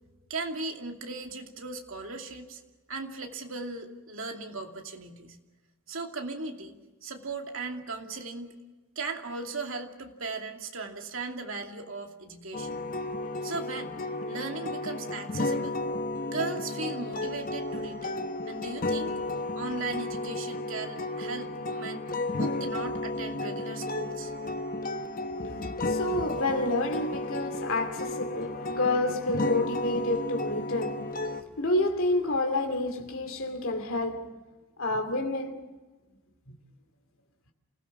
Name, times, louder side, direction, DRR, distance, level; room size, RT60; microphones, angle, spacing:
voice 1, 0.3-2.6 2.9-5.4 5.9-8.5 9.0-12.9 13.4-13.9 14.3-15.8 16.3-19.3 19.5-22.1 22.4-24.3, right 3 dB, 65° right, 2.6 m, -37 dB
sound 1, 12.5-31.4, left 2 dB, 40° left, 1.1 m, -33 dB
voice 2, 25.4-31.0 31.6-34.4 34.8-35.6, left 2 dB, 65° left, 2.6 m, -29 dB
28.0 x 16.5 x 7.3 m
head